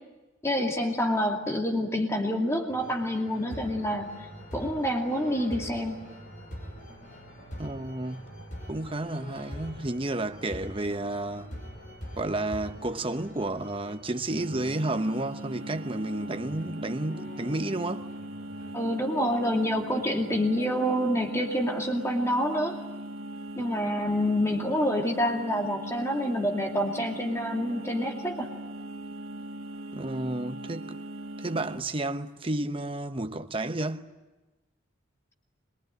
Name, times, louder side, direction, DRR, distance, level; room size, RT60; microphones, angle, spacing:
voice 1, 0.4-4.3 4.5-6.0 18.7-22.8 23.6-28.5, equal, 15° left, 2.4 m, -27 dB
sound 1, 2.7-20.4, equal, 40° left, 5.5 m, -45 dB
voice 2, 7.6-8.3 8.7-11.5 12.2-18.1 29.9-31.0 31.4-34.1, right 2 dB, 25° right, 0.9 m, -31 dB
sound 2, 14.4-31.8, right 1 dB, 90° right, 1.4 m, -40 dB
25.5 x 23.0 x 9.3 m
head